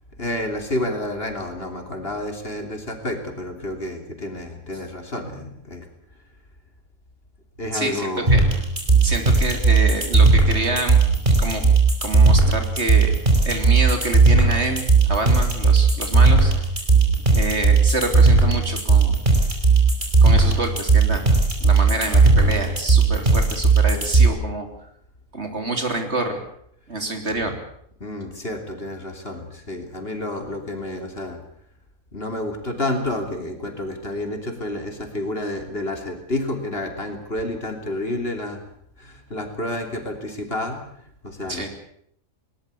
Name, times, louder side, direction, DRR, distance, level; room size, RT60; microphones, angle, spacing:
voice 1, 0.2-5.9 7.6-8.3 28.0-31.4 32.1-38.6 39.0-40.8 41.2-41.7, left 1 dB, 45° left, 5 dB, 3.6 m, -29 dB
voice 2, 7.7-8.4 9.0-11.0 11.4-11.7 12.0-13.2 13.4-16.5 17.3-19.2 20.2-21.2 21.6-24.7 25.3-26.4 26.9-27.5 41.5-41.7, right 2 dB, 50° right, 6 dB, 3.6 m, -27 dB
sound 1, 8.3-24.3, right 4 dB, 35° right, 5.1 m, -16 dB
21.5 x 20.0 x 8.5 m, 0.68 s
omnidirectional pair, 1.5 m